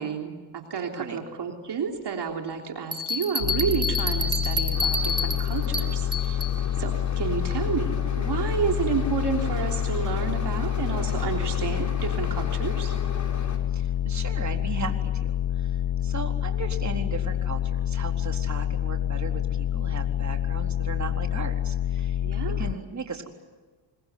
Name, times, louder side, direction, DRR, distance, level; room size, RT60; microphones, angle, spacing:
voice 1, 0.0-13.0 22.2-22.7, right 6 dB, 55° right, 3 dB, 3.5 m, -31 dB
voice 2, 0.8-1.2 13.7-15.7 16.0-22.2 22.6-23.3, right 4 dB, 35° right, 4 dB, 4.1 m, -37 dB
Bell, 2.9-6.6, left 1 dB, 10° right, 3.2 m, -29 dB
sound 1, 3.4-22.7, left 11 dB, 55° left, 0.8 m, -27 dB
sound 2, 4.7-13.6, left 3 dB, 35° left, 5.6 m, -38 dB
25.5 x 23.5 x 9.6 m, 1.3 s
cardioid pair, 75°, 49 cm